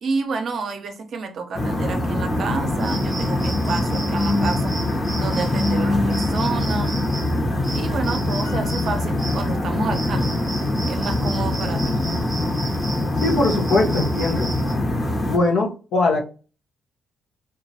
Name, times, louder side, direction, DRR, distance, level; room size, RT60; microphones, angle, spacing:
voice 1, 0.0-4.7 5.2-7.0 7.7-10.3 10.8-12.0, right 4 dB, 55° right, 0.6 m, -29 dB
sound 1, 1.5-15.4, left 1 dB, 30° left, 0.9 m, -23 dB
sound 2, 2.8-14.7, right 2 dB, 15° right, 0.7 m, -36 dB
Piano, 8.4-10.2 10.5-10.6, left 8 dB, 90° left, 1.1 m, -46 dB
voice 2, 13.2-14.5 15.3-16.2, left 3 dB, 75° left, 0.7 m, -21 dB
2.9 x 2.3 x 2.7 m
cardioid pair, 90°, 0 cm